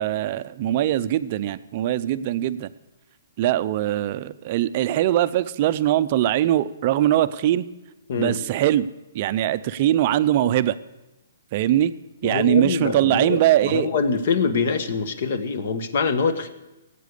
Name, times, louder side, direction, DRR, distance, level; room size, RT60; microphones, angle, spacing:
voice 1, 0.0-2.7 3.4-7.7 8.2-8.9 9.1-10.8 11.5-11.9 12.2-13.9, right 12 dB, 35° right, 13 dB, 0.5 m, -21 dB
voice 2, 12.2-16.5, left 5 dB, 50° left, 10 dB, 1.3 m, -24 dB
17.0 x 8.4 x 6.6 m, 1.0 s
hypercardioid pair, 165°, 0 cm